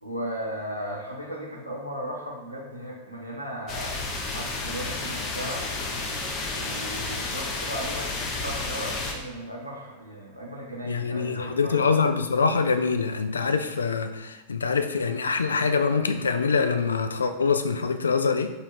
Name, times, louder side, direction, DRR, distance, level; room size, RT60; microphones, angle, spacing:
voice 1, 0.0-4.0 4.3-5.7 6.5-11.9, equal, 90° right, -3 dB, 0.8 m, -36 dB
sound 1, 3.7-9.1, left 3 dB, 35° left, 0.7 m, -31 dB
voice 2, 10.8-18.5, left 5 dB, 75° left, 9 dB, 0.3 m, -24 dB
4.0 x 2.6 x 4.4 m, 1.2 s
figure-of-eight pair, 90°, 0 cm